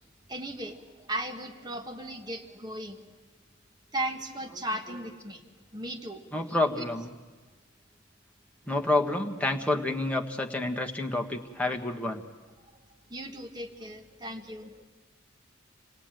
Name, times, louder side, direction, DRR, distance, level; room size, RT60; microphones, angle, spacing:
voice 1, 0.3-3.2 3.9-5.4 5.7-6.2 6.8-6.9 13.1-14.9, right 1 dB, 20° right, 4 dB, 1.4 m, -36 dB
voice 2, 6.3-7.1 8.7-12.2, left 2 dB, 5° left, 2 dB, 1.4 m, -28 dB
27.5 x 18.0 x 9.0 m, 1.3 s
head